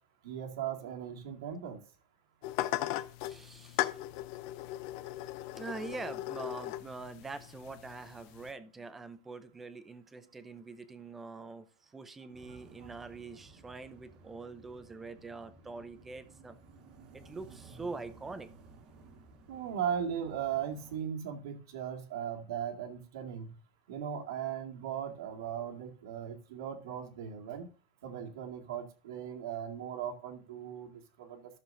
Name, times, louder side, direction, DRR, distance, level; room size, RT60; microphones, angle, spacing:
voice 1, 0.2-1.8 12.4-12.9 19.5-23.5 23.9-27.7 28.0-30.9 31.2-31.4, right 8 dB, 85° right, 1 dB, 2.1 m, -38 dB
sound 1, 2.4-8.5, left 15 dB, 50° left, 0.5 m, -38 dB
voice 2, 3.3-4.0 5.5-16.6 17.1-18.5, right 3 dB, 10° right, 11 dB, 0.6 m, -44 dB
sound 2, 12.3-21.0, right 3 dB, 35° right, 1.6 m, -56 dB
14.0 x 6.9 x 2.6 m, 0.39 s
supercardioid pair, 165°, 2 cm